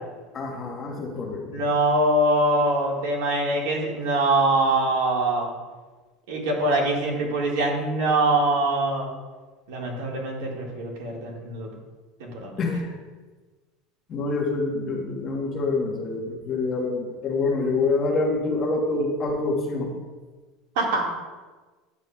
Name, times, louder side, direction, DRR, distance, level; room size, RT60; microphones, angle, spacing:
voice 1, 0.3-1.5 12.6-12.9 14.1-19.9, left 3 dB, 25° left, 0 dB, 1.0 m, -26 dB
voice 2, 1.3-5.5 6.3-9.1 9.7-11.7 12.2-12.6 20.8-21.0, right 2 dB, 80° right, -1 dB, 1.7 m, -23 dB
9.4 x 7.0 x 2.2 m, 1.3 s
cardioid pair, 175°, 0 cm